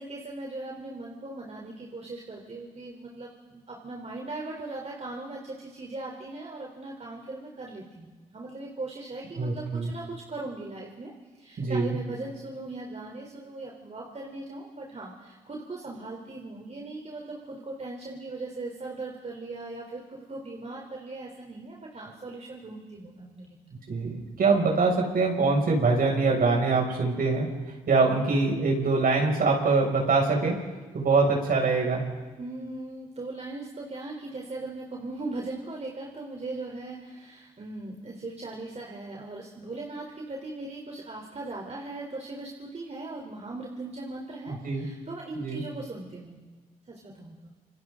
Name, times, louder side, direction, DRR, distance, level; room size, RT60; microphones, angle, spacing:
voice 1, 0.0-23.6 32.4-46.4 46.9-47.5, right 2 dB, 40° right, 0 dB, 4.0 m, -39 dB
voice 2, 9.4-9.9 11.6-11.9 23.9-30.6 30.9-32.0 44.5-44.9 45.4-45.6, right 3 dB, 60° right, 0 dB, 6.9 m, -24 dB
30.0 x 27.5 x 4.0 m, 1.3 s
hypercardioid pair, 40°, 17 cm